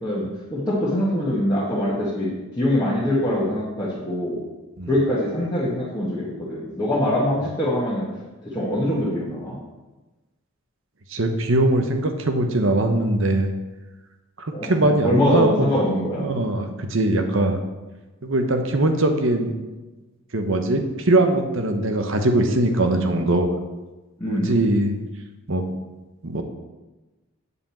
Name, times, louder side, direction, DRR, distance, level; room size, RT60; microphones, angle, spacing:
voice 1, 0.0-2.3 2.6-4.4 4.9-8.1 8.4-9.5 14.5-14.7 15.0-16.3 24.2-24.6, left 1 dB, 15° left, -9 dB, 1.7 m, -23 dB
voice 2, 11.1-13.5 14.4-15.7 16.2-17.6 18.2-19.6 20.3-23.5 24.3-24.9 25.5-25.6 26.2-26.4, right 1 dB, 60° right, 6 dB, 1.0 m, -21 dB
8.2 x 5.2 x 7.2 m, 1.2 s
head